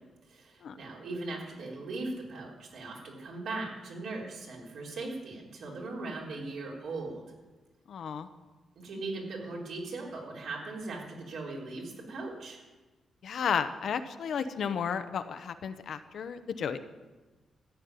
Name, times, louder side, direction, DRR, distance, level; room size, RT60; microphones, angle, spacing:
voice 1, 0.3-7.2 8.8-12.6, right 3 dB, 70° right, -3 dB, 4.1 m, -39 dB
voice 2, 7.9-8.3 13.2-16.8, left 7 dB, 65° left, 10 dB, 0.8 m, -33 dB
14.0 x 7.3 x 9.6 m, 1.2 s
wide cardioid pair, 145°, 0 cm